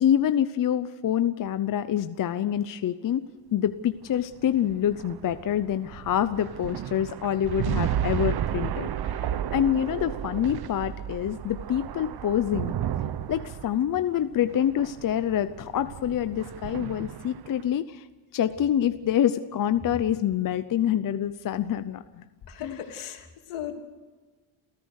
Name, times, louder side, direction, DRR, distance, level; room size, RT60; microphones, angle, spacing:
voice 1, 0.0-3.2 3.5-9.2 9.5-12.8 13.3-18.0 18.3-22.2 22.6-22.8, left 10 dB, 40° left, 11 dB, 0.7 m, -26 dB
sound 1, 4.0-17.6, right 10 dB, 50° right, 1.0 m, -33 dB
voice 2, 22.5-23.7, left 10 dB, 75° left, 3 dB, 3.3 m, -37 dB
30.0 x 14.0 x 6.5 m, 1.4 s
cardioid pair, 140°, 50 cm